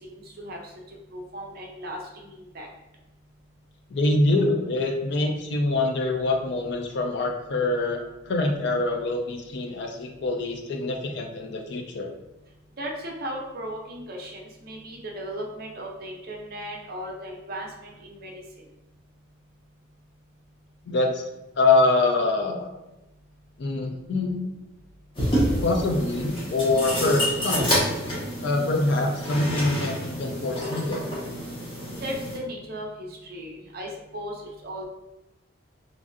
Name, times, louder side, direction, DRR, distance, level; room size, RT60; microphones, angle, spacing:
voice 1, 0.1-0.6 1.1-2.7 12.8-18.3 32.0-34.9, equal, 45° right, 0 dB, 0.5 m, -36 dB
voice 2, 3.9-12.1 20.9-21.3 21.6-22.7 23.6-24.4 25.6-27.9 28.4-31.0, left 2 dB, 55° left, 3 dB, 0.4 m, -25 dB
sound 1, 25.2-32.4, equal, 25° left, 0.7 m, -28 dB
3.1 x 2.5 x 2.5 m, 0.98 s
head